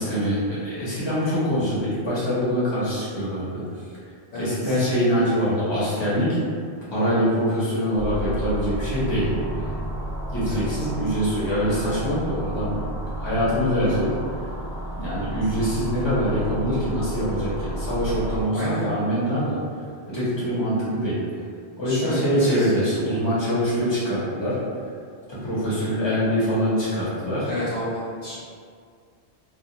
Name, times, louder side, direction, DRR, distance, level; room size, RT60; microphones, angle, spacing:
voice 1, 0.0-3.6 4.3-6.4 6.9-9.7 10.3-12.8 13.2-14.1 15.0-19.6 20.1-21.2 21.8-24.6 25.3-27.5, equal, 25° left, -10 dB, 0.7 m, -24 dB
voice 2, 4.3-4.7 10.5-10.6 18.5-18.8 21.8-22.5 27.4-28.4, equal, 55° left, -11 dB, 0.4 m, -30 dB
sound 1, 8.0-18.4, right 1 dB, 55° right, 0.4 m, -31 dB
2.3 x 2.1 x 2.7 m, 2.2 s
omnidirectional pair, 1.2 m